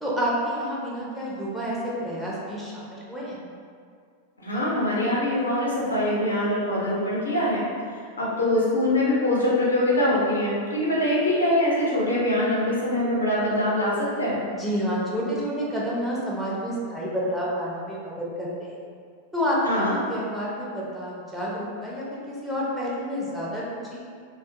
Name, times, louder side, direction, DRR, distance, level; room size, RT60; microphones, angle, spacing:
voice 1, 0.0-3.4 14.5-18.8 19.3-24.0, equal, ahead, -7 dB, 0.6 m, -29 dB
voice 2, 4.4-7.6 8.2-14.4 19.6-20.0, left 1 dB, 75° left, -6 dB, 0.6 m, -23 dB
2.4 x 2.3 x 2.6 m, 2.2 s
figure-of-eight pair, 90°, 0 cm